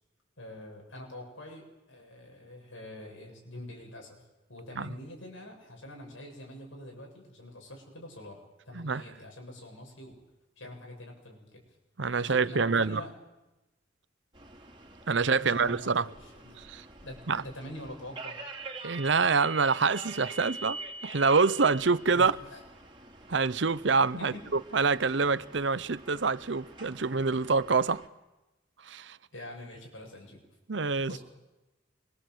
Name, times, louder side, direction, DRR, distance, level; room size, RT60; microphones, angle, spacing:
voice 1, 0.4-1.6 1.9-4.2 4.5-10.2 10.6-11.6 12.2-13.1 15.4-15.9 16.2-16.6 17.0-18.4 22.1-22.6 24.1-24.5 29.3-30.4 31.1-31.2, left 1 dB, 90° left, 7.4 m, -45 dB
voice 2, 12.0-13.0 15.1-16.0 16.7-16.8 17.3-17.4 18.8-22.3 23.3-28.0 28.8-29.2 30.7-31.2, right 4 dB, 65° right, 0.8 m, -26 dB
sound 1, 14.3-28.1, right 3 dB, 25° right, 2.8 m, -45 dB
26.5 x 23.5 x 8.0 m
head